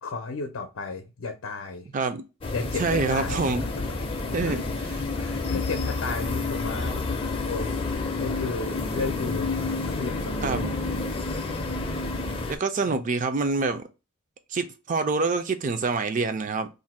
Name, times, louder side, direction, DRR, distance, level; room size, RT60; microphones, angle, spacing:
voice 1, 0.0-1.9 2.5-3.5 3.8-3.9 4.4-4.6 5.1-7.0 7.5-7.7 8.2-9.5 9.8-10.7 12.9-13.1, left 3 dB, 80° left, 0.5 m, -34 dB
voice 2, 1.9-2.2 2.8-3.7 4.3-4.6 10.4-10.7 12.5-13.8 14.5-16.7, right 4 dB, 40° right, 0.4 m, -26 dB
sound 1, 2.4-12.6, left 3 dB, 25° left, 0.4 m, -29 dB
2.5 x 2.1 x 4.0 m
head